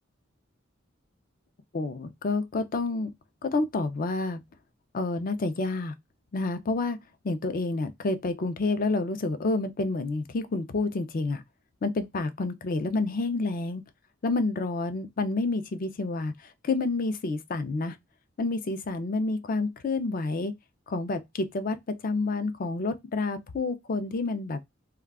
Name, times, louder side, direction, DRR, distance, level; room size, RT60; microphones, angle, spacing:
voice 1, 1.7-3.1 3.4-4.4 4.9-5.9 6.3-7.0 7.2-11.4 11.8-13.8 14.2-18.0 18.4-20.5 20.9-24.6, left 3 dB, 45° left, 0.5 m, -29 dB
2.3 x 2.3 x 3.4 m
head